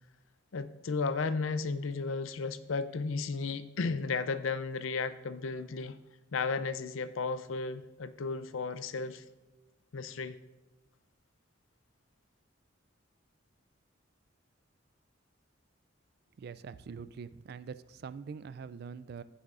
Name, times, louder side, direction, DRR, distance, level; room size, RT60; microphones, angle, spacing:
voice 1, 0.5-5.9 6.3-9.2 9.9-10.4, left 4 dB, 80° left, 13 dB, 0.5 m, -34 dB
voice 2, 16.4-19.2, right 6 dB, 50° right, 15 dB, 0.3 m, -44 dB
15.5 x 7.1 x 2.5 m, 1.0 s
head